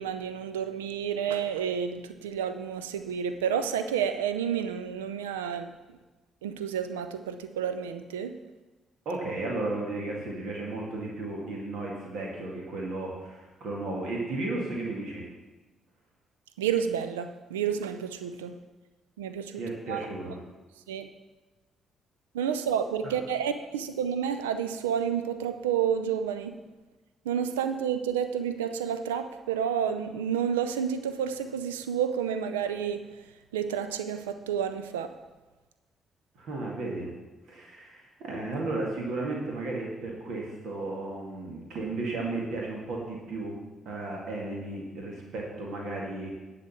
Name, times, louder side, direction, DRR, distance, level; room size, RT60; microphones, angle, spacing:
voice 1, 0.0-5.7 6.4-8.4 16.6-18.6 19.2-19.6 19.9-20.1 20.9-21.1 22.3-26.6 27.2-33.1 33.5-35.1, right 8 dB, 80° right, 9 dB, 0.5 m, -30 dB
voice 2, 9.1-15.2 19.6-20.4 23.0-23.1 36.4-37.1 37.5-43.5 43.9-46.3, right 2 dB, 60° right, -2 dB, 2.1 m, -34 dB
11.0 x 5.1 x 7.2 m, 1.2 s
figure-of-eight pair, 45°, 0 cm